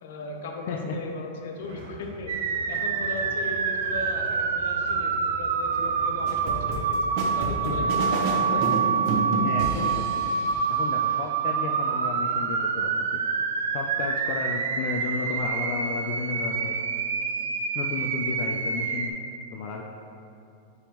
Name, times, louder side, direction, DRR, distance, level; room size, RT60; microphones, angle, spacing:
voice 1, 0.0-2.3 2.7-7.1 7.4-8.7, left 3 dB, 70° left, 2 dB, 0.8 m, -37 dB
sound 1, 1.6-7.2, equal, 60° right, 1.4 m, -44 dB
sound 2, 2.3-19.1, right 6 dB, 90° right, 0.4 m, -27 dB
sound 3, 6.3-10.6, right 2 dB, 40° right, 0.8 m, -29 dB
voice 2, 9.4-10.2 10.7-12.9 13.7-16.8 17.7-19.1 19.5-19.8, left 5 dB, 40° left, 0 dB, 0.4 m, -33 dB
9.6 x 3.6 x 3.0 m, 2.6 s
supercardioid pair, 165°, 0 cm